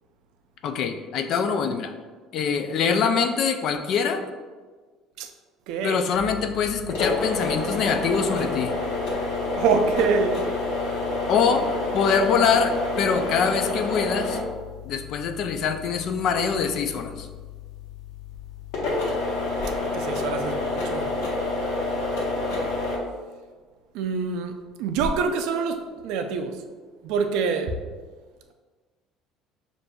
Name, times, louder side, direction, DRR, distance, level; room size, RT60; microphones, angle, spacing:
voice 1, 0.6-1.9 2.3-4.2 5.8-8.7 11.3-11.7 11.9-14.4 14.9-17.3, left 6 dB, 45° left, 7 dB, 0.3 m, -24 dB
voice 2, 5.7-6.0 9.6-10.4 19.9-21.1 23.9-26.6 27.0-27.8, right 5 dB, 65° right, 6 dB, 0.4 m, -25 dB
sound 1, 6.1-23.0, left 2 dB, 75° left, 1.1 m, -29 dB
6.4 x 2.5 x 2.3 m, 1.4 s
cardioid pair, 170°, 0 cm